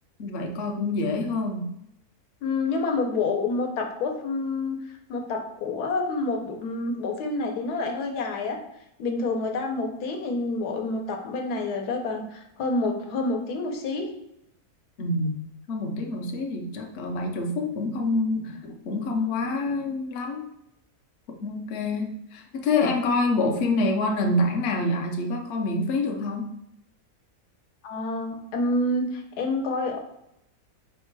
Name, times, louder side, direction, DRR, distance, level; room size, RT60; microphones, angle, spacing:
voice 1, 0.2-1.7 15.0-20.5 21.4-26.5, left 2 dB, 60° left, 2 dB, 0.7 m, -27 dB
voice 2, 2.4-4.8 5.1-8.6 9.0-14.1 27.8-30.0, left 3 dB, 80° left, 3 dB, 1.2 m, -28 dB
4.3 x 2.2 x 4.5 m, 0.80 s
omnidirectional pair, 1.6 m